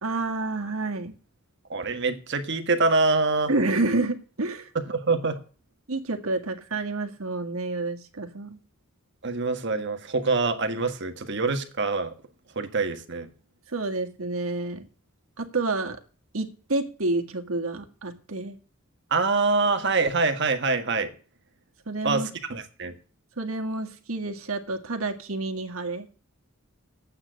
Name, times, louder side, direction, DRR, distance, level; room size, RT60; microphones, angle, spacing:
voice 1, 0.0-1.1 3.5-4.7 5.9-8.6 13.7-14.9 15.4-16.0 16.3-18.6 21.9-22.3 23.4-26.1, right 2 dB, 80° right, 4 dB, 1.9 m, -29 dB
voice 2, 1.7-3.5 4.7-5.4 9.2-12.1 12.5-13.3 19.1-21.1 22.0-23.0, right 3 dB, 55° right, 7 dB, 1.6 m, -25 dB
10.5 x 8.7 x 6.4 m, 0.38 s
head